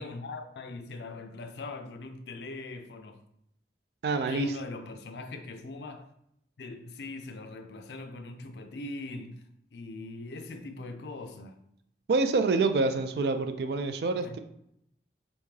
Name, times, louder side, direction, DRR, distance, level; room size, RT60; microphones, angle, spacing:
voice 1, 0.0-3.2 4.3-6.1 6.6-11.6 14.2-14.4, left 2 dB, 75° left, 0.4 m, -41 dB
voice 2, 4.0-4.5 12.1-14.4, right 3 dB, 65° right, 0.3 m, -27 dB
3.5 x 2.6 x 3.2 m
head